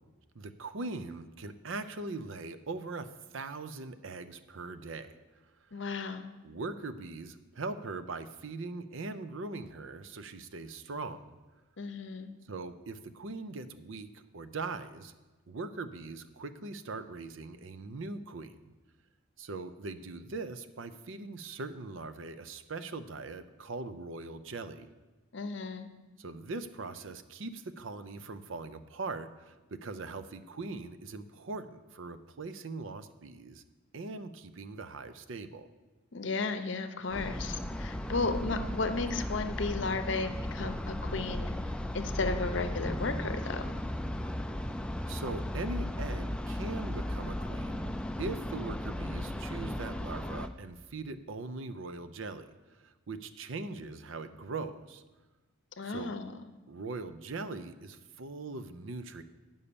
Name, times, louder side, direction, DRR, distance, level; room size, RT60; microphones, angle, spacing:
voice 1, 0.3-3.1 3.3-5.1 6.4-11.4 12.5-15.1 15.5-18.7 19.4-24.9 26.2-33.6 33.9-35.7 45.1-55.0 55.8-56.1 56.7-59.2, right 3 dB, 70° right, 11 dB, 0.6 m, -41 dB
voice 2, 5.7-6.3 11.8-12.3 25.3-25.9 36.1-41.5 41.9-43.7 55.8-56.3, left 3 dB, 60° left, 9 dB, 0.7 m, -34 dB
sound 1, 37.1-50.5, left 1 dB, 5° left, 0.3 m, -36 dB
9.9 x 5.5 x 6.9 m, 1.2 s
head